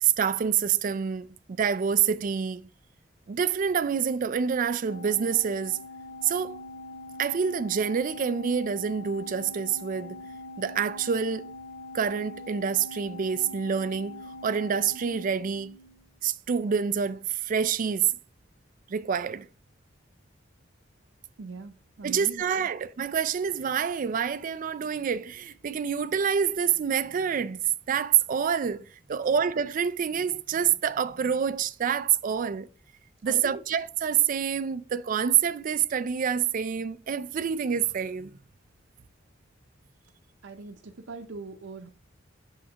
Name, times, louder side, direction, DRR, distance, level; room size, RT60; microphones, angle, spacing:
voice 1, 0.0-2.6 3.3-5.8 6.2-6.6 7.2-10.2 10.6-11.4 11.9-15.8 16.2-18.1 18.9-19.5 22.0-32.7 33.2-38.3, right 7 dB, 45° right, 0.4 m, -27 dB
Organ, 4.8-16.1, left 2 dB, 30° left, 2.0 m, -43 dB
voice 2, 21.4-22.7 29.1-29.2 33.2-33.6 40.4-41.9, right 3 dB, 90° right, 0.6 m, -41 dB
6.3 x 6.0 x 2.8 m
head